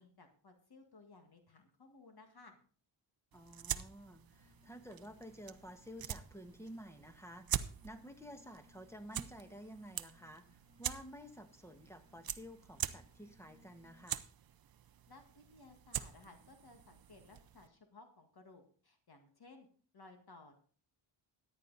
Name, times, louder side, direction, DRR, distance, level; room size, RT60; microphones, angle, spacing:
voice 1, 0.0-2.6 15.1-19.7 19.9-20.5, left 3 dB, 50° left, 5 dB, 1.8 m, -59 dB
voice 2, 3.3-14.2, equal, 5° left, 7 dB, 1.4 m, -52 dB
sound 1, 3.3-17.7, right 9 dB, 45° right, 0.7 m, -45 dB
sound 2, 4.3-14.0, left 3 dB, 70° left, 5.3 m, -69 dB
14.0 x 9.9 x 4.0 m, 0.42 s
cardioid pair, 105°, 49 cm